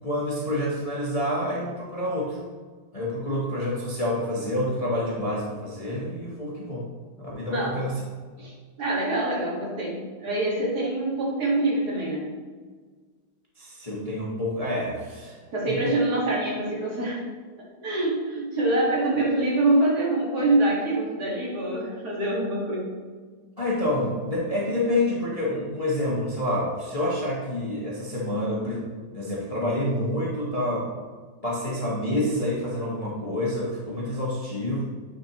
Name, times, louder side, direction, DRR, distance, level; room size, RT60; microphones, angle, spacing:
voice 1, 0.0-2.4 2.9-6.8 7.1-8.0 13.6-15.4 15.7-15.8 23.6-28.8 29.1-30.9 31.4-34.8, left 1 dB, 25° left, -6 dB, 0.9 m, -28 dB
voice 2, 8.4-12.3 15.5-17.2 17.8-22.9, right 2 dB, 60° right, -5 dB, 2.3 m, -25 dB
9.2 x 4.3 x 3.0 m, 1.5 s
omnidirectional pair, 1.9 m